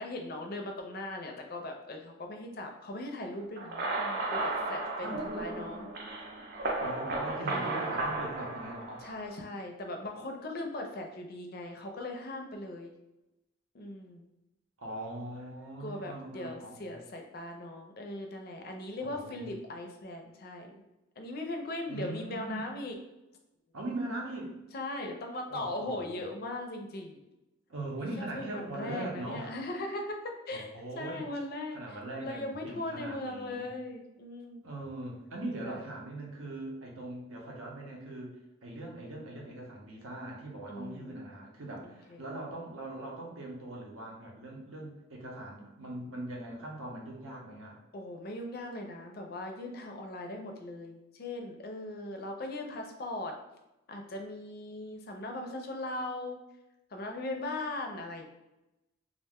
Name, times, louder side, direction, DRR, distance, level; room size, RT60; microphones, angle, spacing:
voice 1, 0.0-5.9 7.4-8.0 9.0-12.9 13.7-14.3 15.8-20.8 21.2-23.0 24.7-27.2 28.0-34.7 35.6-35.8 40.7-41.2 42.1-42.2 47.9-53.4 53.9-56.4 56.9-58.2, left 2 dB, 45° left, 3 dB, 0.4 m, -39 dB
sound 1, 3.6-9.4, right 2 dB, 50° right, 0.4 m, -34 dB
voice 2, 6.8-9.1 14.8-17.0 19.0-19.5 21.9-22.6 23.7-24.5 25.5-26.2 27.7-29.5 30.5-31.3 31.7-33.7 34.6-47.8, right 1 dB, 85° right, -1 dB, 0.7 m, -41 dB
2.4 x 2.1 x 3.5 m, 0.95 s
head